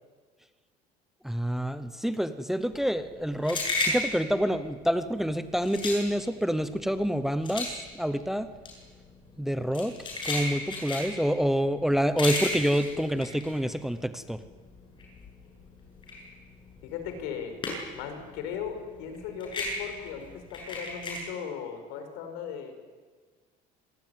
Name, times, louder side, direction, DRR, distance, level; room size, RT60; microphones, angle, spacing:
voice 1, 1.2-8.5 9.4-9.9 10.2-14.4, equal, ahead, 11 dB, 0.8 m, -27 dB
sound 1, 2.7-14.3 14.7-18.1 18.4-21.2, left 2 dB, 30° left, 7.9 m, -34 dB
voice 2, 16.8-17.5 17.9-22.7, left 7 dB, 90° left, 7 dB, 5.4 m, -37 dB
26.0 x 19.0 x 9.4 m, 1.5 s
cardioid pair, 160°, 17 cm